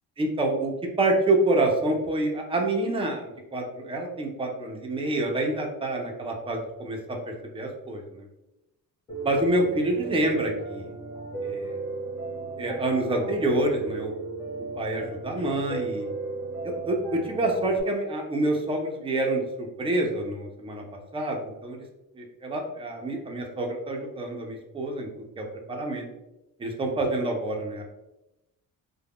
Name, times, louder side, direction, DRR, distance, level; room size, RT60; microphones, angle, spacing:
voice 1, 0.2-0.7 1.0-7.2 7.5-8.3 9.2-10.9 11.4-11.8 12.6-14.1 14.8-16.1 16.6-20.8 21.1-21.8 22.1-25.1 25.4-26.0 26.6-27.8, right 2 dB, 15° right, 1 dB, 0.4 m, -27 dB
Piano, 9.1-17.8, right 3 dB, 15° left, 1.0 m, -35 dB
2.3 x 2.1 x 3.4 m, 0.93 s
cardioid pair, 155°, 35 cm